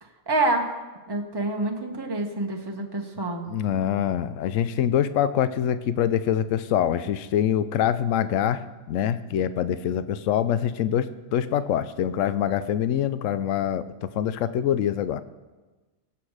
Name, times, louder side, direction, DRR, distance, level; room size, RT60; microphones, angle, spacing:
voice 1, 0.3-0.7 1.1-3.5, right 2 dB, 20° right, 2 dB, 1.4 m, -27 dB
voice 2, 3.5-13.9 14.1-15.2, left 10 dB, 85° left, 13 dB, 1.0 m, -25 dB
21.5 x 8.7 x 4.9 m, 1.2 s
omnidirectional pair, 1.3 m